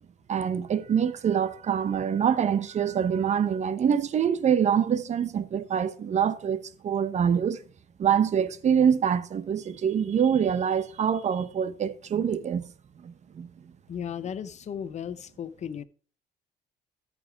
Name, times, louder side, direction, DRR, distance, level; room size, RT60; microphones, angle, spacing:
voice 1, 0.3-7.6 8.0-12.6 13.0-13.5, right 8 dB, 45° right, 1.0 m, -25 dB
voice 2, 13.9-15.8, left 8 dB, 45° left, 0.8 m, -35 dB
13.5 x 5.0 x 4.6 m
cardioid pair, 110°, 17 cm